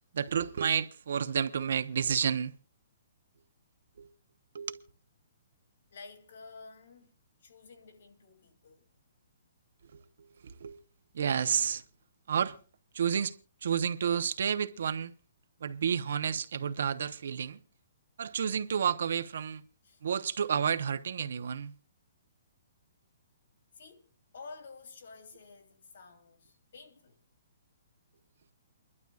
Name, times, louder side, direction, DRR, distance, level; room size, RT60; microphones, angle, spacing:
voice 1, 0.1-2.5 4.0-4.1 4.5-4.8 9.9-10.8 11.1-11.8 12.3-12.6 12.9-15.1 15.6-17.6 18.2-19.6 20.0-21.7, right 7 dB, 55° right, 0.8 m, -31 dB
voice 2, 5.9-7.1 7.4-8.9 19.8-20.0 23.7-27.2, left 4 dB, 60° left, 2.8 m, -51 dB
29.0 x 12.0 x 2.4 m
hypercardioid pair, 180°, 0 cm